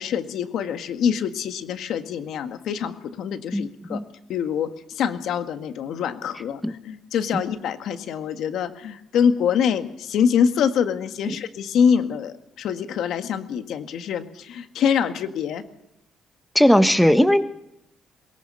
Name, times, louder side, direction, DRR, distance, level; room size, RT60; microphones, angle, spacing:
voice 1, 0.0-4.0 4.3-4.7 4.9-15.6, left 7 dB, 80° left, 8 dB, 1.8 m, -25 dB
voice 2, 3.5-4.0 6.6-6.7 11.3-11.4 16.5-17.4, equal, 5° left, 10 dB, 1.3 m, -18 dB
23.0 x 21.0 x 5.6 m, 0.82 s
cardioid pair, 90°, 0 cm